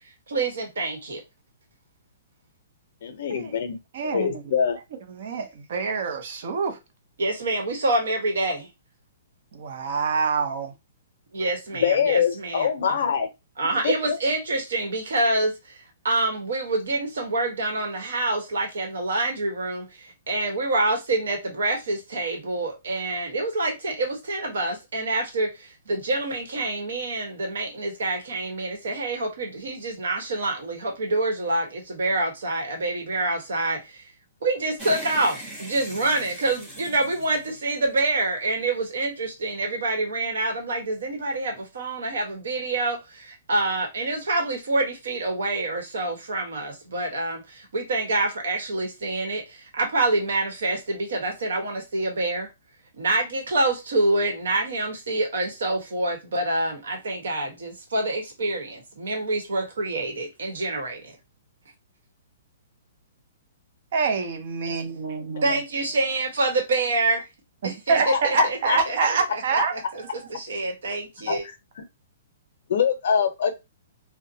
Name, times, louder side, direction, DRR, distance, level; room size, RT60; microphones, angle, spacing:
voice 1, 0.3-1.2 7.2-8.7 11.3-13.1 13.6-34.1 34.4-52.5 52.9-61.2 65.4-67.2 67.6-71.4, right 2 dB, 80° right, 1.1 m, -27 dB
voice 2, 3.0-3.8 4.0-4.8 11.8-13.3 13.8-14.2 65.5-65.6 68.0-68.8 71.3-71.4 72.7-73.5, left 7 dB, 55° left, 0.6 m, -24 dB
voice 3, 3.9-4.5 5.1-6.8 9.5-10.7 63.9-65.5 67.6-70.3, right 5 dB, 50° right, 0.6 m, -26 dB
sound 1, 34.8-38.3, right 1 dB, 5° right, 0.7 m, -40 dB
2.7 x 2.1 x 2.7 m
hypercardioid pair, 170°, 0 cm